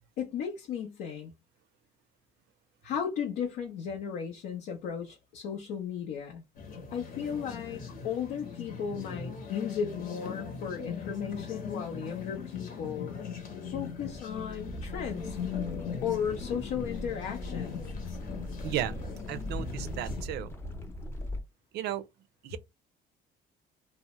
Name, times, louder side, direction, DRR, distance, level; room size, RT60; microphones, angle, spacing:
voice 1, 0.2-1.3 2.8-6.4 6.9-13.2 13.7-15.4 16.0-17.8, left 7 dB, 80° left, 0.6 m, -35 dB
sound 1, 6.6-20.2, left 6 dB, 55° left, 0.9 m, -40 dB
sound 2, 13.7-21.4, left 1 dB, 15° left, 0.6 m, -40 dB
voice 2, 18.6-20.5 21.7-22.1 22.4-22.6, right 12 dB, 75° right, 0.4 m, -35 dB
2.7 x 2.0 x 3.0 m
cardioid pair, 110°, 17 cm